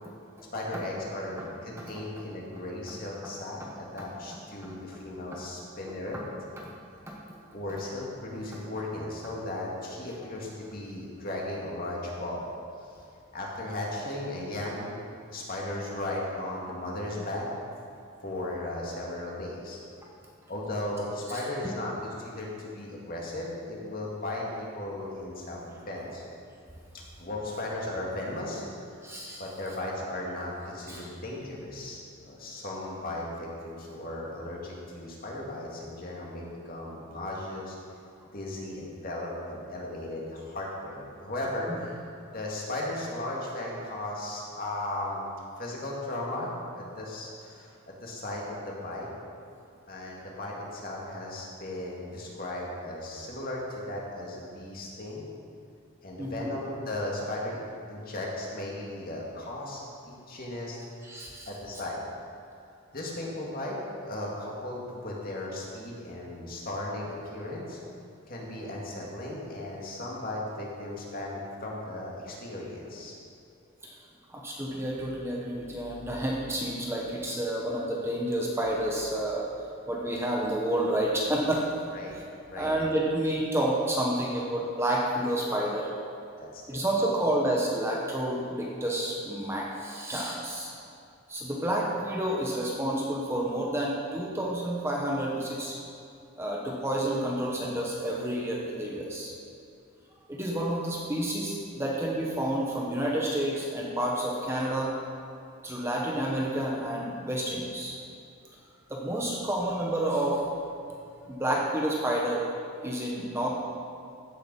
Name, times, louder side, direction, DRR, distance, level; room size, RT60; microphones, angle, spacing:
voice 1, 0.5-6.2 7.5-12.5 12.8-12.9 13.3-14.9 15.3-17.5 18.2-19.8 20.5-26.2 26.9-28.6 28.9-29.0 29.4-37.8 38.3-42.0 42.3-45.3 45.6-47.7 48.0-49.1 49.9-55.3 56.0-60.8 61.5-62.0 62.9-67.8 68.3-73.1 81.9-82.2 82.5-82.7 86.4-86.8, left 1 dB, 40° left, -3 dB, 2.2 m, -36 dB
voice 2, 7.1-7.4 29.0-29.4 30.9-31.1 41.7-41.8 56.2-56.5 61.0-61.5 73.8-74.0 74.3-81.7 82.1-82.2 82.6-85.9 86.7-90.7 91.3-95.7 96.4-99.3 100.3-104.9 105.6-108.0 108.9-110.4 111.3-112.5 112.8-113.5, right 1 dB, 10° right, -3 dB, 1.2 m, -29 dB
15.0 x 6.9 x 5.4 m, 2.5 s
head